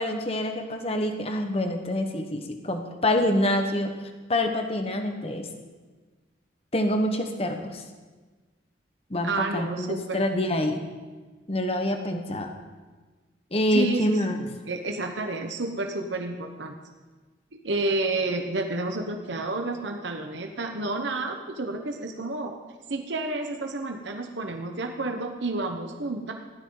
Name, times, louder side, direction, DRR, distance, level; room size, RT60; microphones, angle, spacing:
voice 1, 0.0-3.9 4.3-5.5 6.7-7.8 9.1-10.8 11.5-12.5 13.5-14.4, left 1 dB, 30° left, 5 dB, 1.3 m, -26 dB
voice 2, 9.2-10.2 13.7-16.7 17.5-22.5 22.9-26.3, right 2 dB, 75° right, 3 dB, 1.2 m, -30 dB
16.5 x 13.5 x 4.0 m, 1.3 s
head